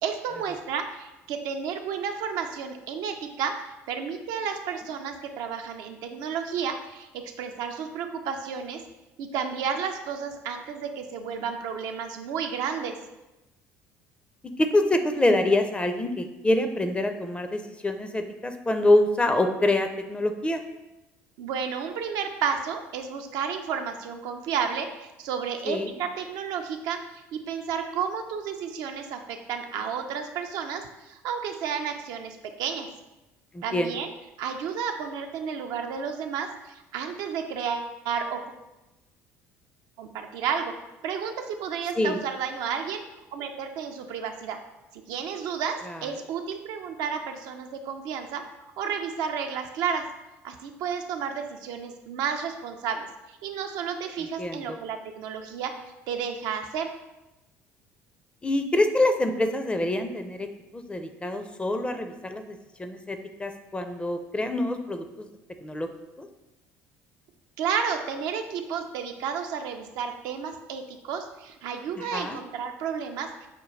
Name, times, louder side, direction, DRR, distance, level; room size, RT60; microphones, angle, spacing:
voice 1, 0.0-8.8 9.2-13.0 21.4-27.0 27.3-32.9 33.6-34.1 34.4-38.5 40.0-40.7 41.0-43.0 43.3-44.6 45.1-48.4 48.8-50.1 50.4-56.9 67.6-73.5, right 7 dB, 65° right, 5 dB, 0.4 m, -32 dB
voice 2, 14.6-20.6 25.7-25.9 33.5-33.9 42.0-42.2 45.8-46.0 54.2-54.8 58.4-60.5 60.7-65.3 65.6-65.9 66.2-66.3 72.0-72.4, left 1 dB, 15° left, 6 dB, 0.5 m, -26 dB
5.7 x 2.2 x 3.1 m, 0.99 s
hypercardioid pair, 60°, 7 cm